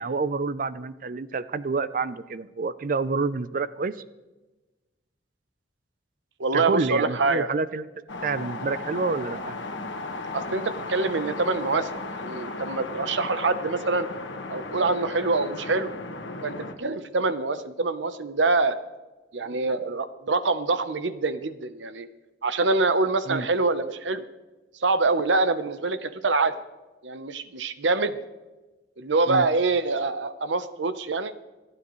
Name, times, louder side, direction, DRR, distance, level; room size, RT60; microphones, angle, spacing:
voice 1, 0.0-3.9 6.5-7.9 8.2-9.5 23.3-23.5 29.3-29.5, right 4 dB, 45° right, 15 dB, 0.5 m, -28 dB
voice 2, 6.4-7.5 10.3-14.1 14.5-15.9 16.4-18.8 19.3-22.1 22.4-24.2 24.8-26.5 27.0-28.2 29.0-31.3, right 3 dB, 80° right, 12 dB, 0.8 m, -25 dB
sound 1, 8.1-16.7, left 3 dB, 80° left, 1.5 m, -35 dB
27.0 x 9.8 x 3.2 m, 1.1 s
head